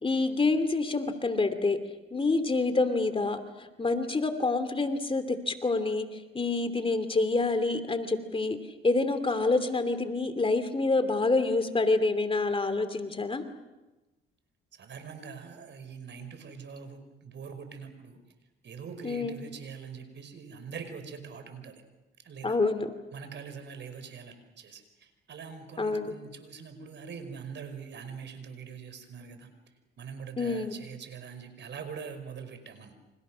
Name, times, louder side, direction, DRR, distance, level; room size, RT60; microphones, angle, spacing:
voice 1, 0.0-1.8 2.1-8.6 8.8-13.4 19.0-19.3 22.4-22.9 25.8-26.1 30.4-30.7, left 3 dB, 25° left, 10 dB, 2.8 m, -27 dB
voice 2, 14.7-18.2 18.6-21.8 22.2-22.6 23.1-29.5 30.0-32.9, right 6 dB, 60° right, 9 dB, 5.3 m, -43 dB
29.5 x 26.5 x 6.4 m, 1.1 s
cardioid pair, 80°, 21 cm